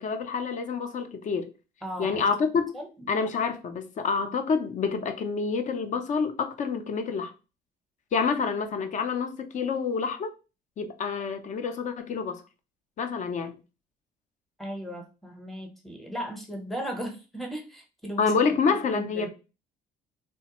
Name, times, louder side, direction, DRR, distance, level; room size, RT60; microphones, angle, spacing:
voice 1, 0.0-1.5 2.0-2.8 3.1-7.3 8.1-10.3 10.8-12.4 13.0-13.5 18.2-19.3, left 5 dB, 45° left, 0.5 m, -27 dB
voice 2, 1.8-2.2 2.7-3.1 14.6-18.3 18.9-19.3, equal, ahead, 0.8 m, -36 dB
3.3 x 2.1 x 2.9 m
cardioid pair, 110°, 17 cm